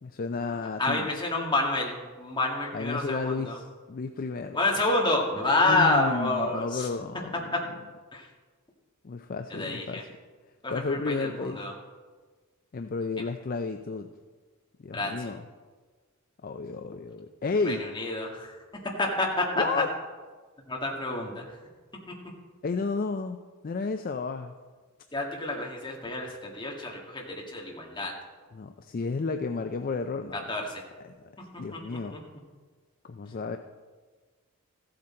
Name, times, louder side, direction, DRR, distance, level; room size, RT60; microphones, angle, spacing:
voice 1, 0.0-1.1 2.7-4.6 5.6-7.6 9.0-10.1 10.7-11.6 12.7-14.1 14.8-15.5 16.4-17.8 19.5-19.9 22.6-23.4 23.6-24.5 28.5-30.5 31.0-31.3 31.6-32.2 33.0-33.6, left 4 dB, 40° left, 7 dB, 0.4 m, -32 dB
voice 2, 0.8-3.6 4.5-6.9 8.1-8.3 9.5-10.0 10.6-11.7 14.9-15.3 17.7-18.5 19.0-19.8 20.7-21.4 25.1-28.1 30.3-30.8 31.7-32.2, left 2 dB, 20° left, -1 dB, 1.7 m, -28 dB
14.5 x 7.9 x 4.3 m, 1.4 s
head